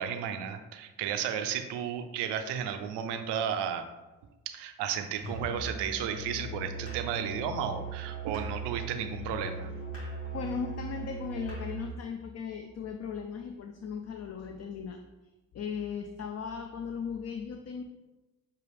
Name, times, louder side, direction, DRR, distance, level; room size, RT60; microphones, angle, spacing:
voice 1, 0.0-3.8 4.5-9.7, right 8 dB, 80° right, 7 dB, 0.6 m, -33 dB
Musical instrument, 5.2-12.0, right 2 dB, 85° left, 1.4 m, -39 dB
voice 2, 10.3-15.0 15.5-17.8, left 6 dB, 40° left, 5 dB, 0.5 m, -37 dB
6.5 x 2.4 x 3.4 m, 1.1 s
supercardioid pair, 45°, 41 cm